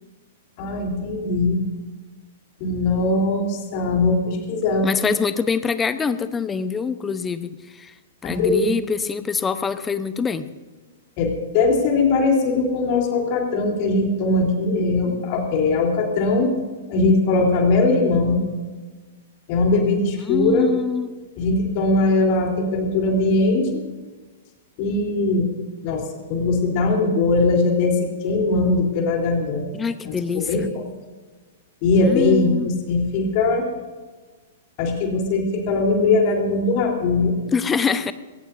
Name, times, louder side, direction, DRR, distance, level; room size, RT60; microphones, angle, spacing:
voice 1, 0.6-1.6 2.6-5.1 8.2-8.7 11.2-16.5 16.9-18.4 19.5-20.7 21.4-23.7 24.8-25.5 25.8-29.7 30.1-30.8 31.8-33.7 34.8-37.3, left 3 dB, 40° left, 2 dB, 3.6 m, -20 dB
voice 2, 4.8-7.9 8.2-10.5 20.2-21.1 29.7-30.7 32.0-32.7 37.5-38.1, left 5 dB, 15° left, 13 dB, 0.9 m, -24 dB
21.5 x 18.0 x 2.7 m, 1.3 s
figure-of-eight pair, 105°, 0 cm